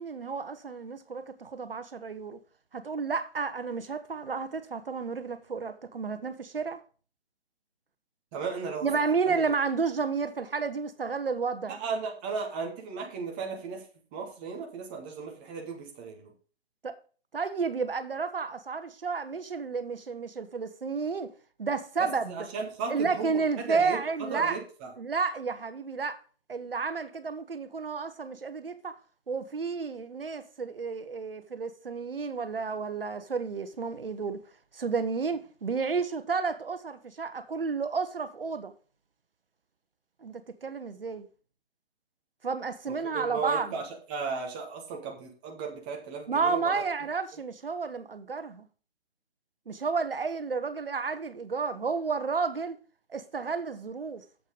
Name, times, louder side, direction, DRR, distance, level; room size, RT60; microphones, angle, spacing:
voice 1, 0.0-2.4 2.7-6.8 8.8-11.8 16.8-17.0 17.3-21.3 21.6-22.5 22.9-24.6 25.0-26.2 26.5-29.0 29.3-34.4 34.7-38.7 40.2-41.3 42.4-43.7 46.3-48.7 49.7-52.8 53.1-54.2, right 5 dB, 60° right, 1.1 m, -31 dB
voice 2, 8.3-8.9 9.2-9.4 11.7-13.8 14.1-16.3 22.0-24.9 43.1-46.8, right 5 dB, 10° right, 0.8 m, -35 dB
7.7 x 6.6 x 5.0 m
figure-of-eight pair, 150°, 31 cm